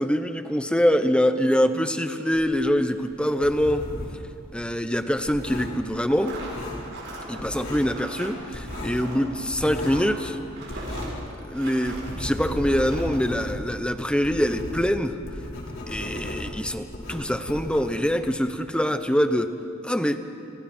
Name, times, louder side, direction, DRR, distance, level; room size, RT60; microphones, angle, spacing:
voice 1, 0.0-3.9 4.5-6.4 7.3-10.4 11.5-15.2 15.9-19.5 19.8-20.2, equal, 5° left, 9 dB, 1.0 m, -24 dB
sound 1, 2.3-4.3 4.5-7.1 7.4-8.0 8.2-11.3 11.6-18.3, left 1 dB, 65° left, 4.6 m, -35 dB
sound 2, 6.0-12.2 12.6-13.2, right 2 dB, 65° right, 7.4 m, -40 dB
30.0 x 29.5 x 4.5 m, 2.6 s
head